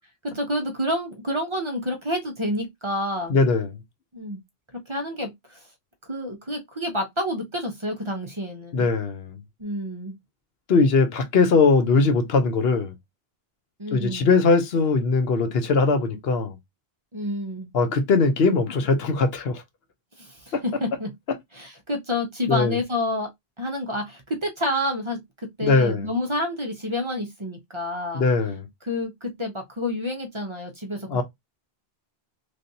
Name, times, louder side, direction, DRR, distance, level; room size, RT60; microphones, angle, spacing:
voice 1, 0.3-3.4 4.1-4.4 4.7-5.6 6.1-8.9 9.6-10.2 13.8-14.3 17.1-17.7 20.2-21.1 21.5-23.3 23.6-25.2 25.6-28.3 28.8-31.2, left 1 dB, 30° right, 0.7 m, -29 dB
voice 2, 3.3-3.7 8.7-9.3 10.7-12.9 13.9-16.6 17.7-19.6 20.5-20.6 22.5-22.8 25.6-26.1 28.1-28.6 31.1-31.2, left 4 dB, 75° left, 1.0 m, -20 dB
3.2 x 2.5 x 2.7 m
omnidirectional pair, 1.0 m